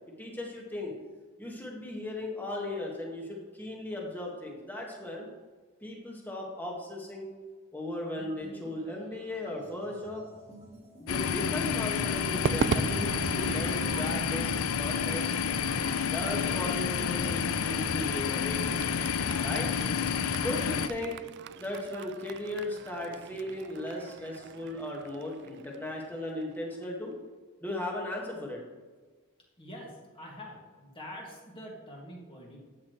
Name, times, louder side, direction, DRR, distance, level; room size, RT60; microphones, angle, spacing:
voice 1, 0.2-0.9 1.4-5.3 5.8-7.3 7.7-10.2 11.0-15.3 16.0-18.8 19.4-19.7 20.4-21.2 21.6-27.2 27.6-28.6, left 1 dB, 10° left, -1 dB, 1.8 m, -37 dB
sound 1, 8.2-13.7, right 1 dB, 30° right, 1.9 m, -51 dB
sound 2, 11.1-20.9, left 7 dB, 80° left, 0.5 m, -30 dB
Crowd / Fireworks, 12.4-26.8, right 6 dB, 55° right, 0.3 m, -39 dB
voice 2, 29.6-32.6, equal, 25° left, -2 dB, 2.2 m, -45 dB
12.5 x 8.5 x 3.2 m, 1.4 s
head